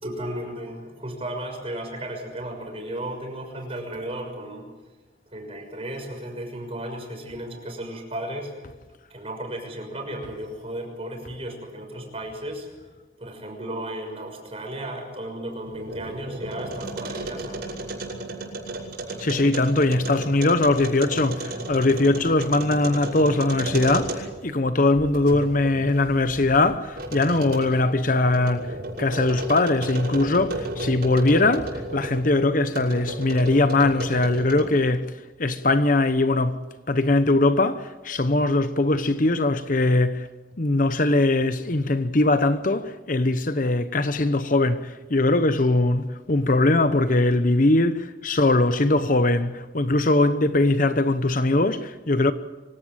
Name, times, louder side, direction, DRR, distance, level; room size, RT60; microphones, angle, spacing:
voice 1, 0.0-4.6 5.3-8.5 9.1-12.7 13.2-17.6, right 1 dB, 35° right, 6.2 m, -34 dB
sound 1, 15.5-24.5 24.9-32.2 32.7-34.8, right 1 dB, 60° right, 6.3 m, -34 dB
voice 2, 19.2-40.3 40.6-52.3, left 2 dB, 50° left, 0.9 m, -21 dB
25.0 x 17.0 x 9.0 m
head